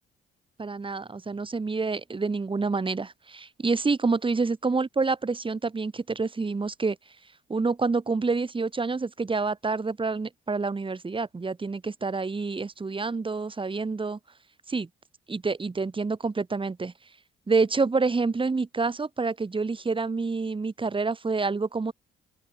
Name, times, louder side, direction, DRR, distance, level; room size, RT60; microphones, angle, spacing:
voice 1, 0.6-7.0 7.5-14.2 14.7-14.9 15.3-16.9 17.5-21.9, right 4 dB, 25° right, 3.0 m, -27 dB
open air
cardioid pair, 90°, 20 cm